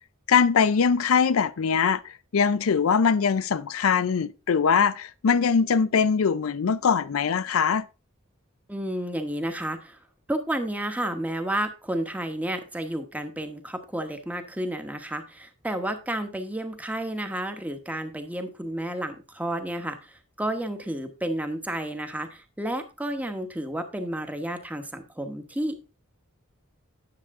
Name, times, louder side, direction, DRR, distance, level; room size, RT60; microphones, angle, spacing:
voice 1, 0.3-7.9, left 6 dB, 80° left, 0.5 m, -22 dB
voice 2, 8.7-10.0 10.3-25.8, right 1 dB, 5° right, 1.0 m, -31 dB
9.8 x 7.2 x 3.6 m
head